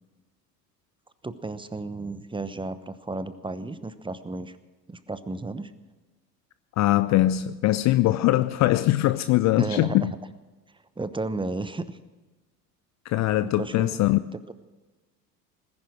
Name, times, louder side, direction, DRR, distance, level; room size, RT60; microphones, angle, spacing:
voice 1, 1.2-4.6 4.9-5.7 9.6-10.1 11.0-12.0 13.4-14.0 14.5-14.6, right 2 dB, 10° right, 1.0 m, -33 dB
voice 2, 6.8-10.1 13.1-14.2, left 15 dB, 35° left, 0.5 m, -22 dB
19.5 x 10.5 x 6.2 m
figure-of-eight pair, 65°, 49 cm